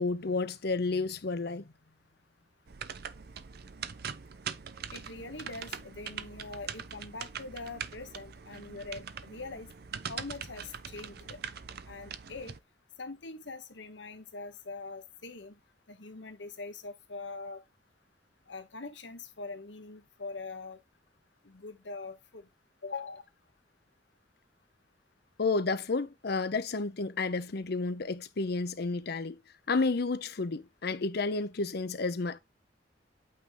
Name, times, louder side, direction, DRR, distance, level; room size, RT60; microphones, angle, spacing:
voice 1, 0.0-1.7 25.4-29.4 29.7-32.4, left 3 dB, 60° left, 0.7 m, -31 dB
sound 1, 2.7-12.6, right 7 dB, 60° right, 0.6 m, -42 dB
voice 2, 4.9-9.7 10.1-11.4 11.9-12.5 13.0-15.5 15.9-17.6 18.5-20.8 21.4-22.5 22.8-23.2, left 3 dB, 75° left, 1.1 m, -43 dB
8.7 x 3.6 x 3.8 m
head